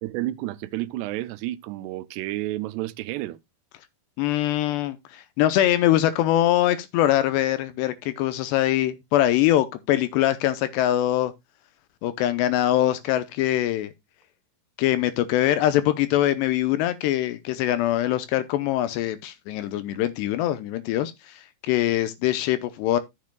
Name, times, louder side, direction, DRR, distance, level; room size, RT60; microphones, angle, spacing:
voice 1, 0.0-3.4, right 16 dB, 80° right, 2.6 m, -31 dB
voice 2, 4.2-11.3 12.0-13.9 14.8-23.0, left 13 dB, 80° left, 2.7 m, -23 dB
13.5 x 7.4 x 2.2 m
omnidirectional pair, 5.2 m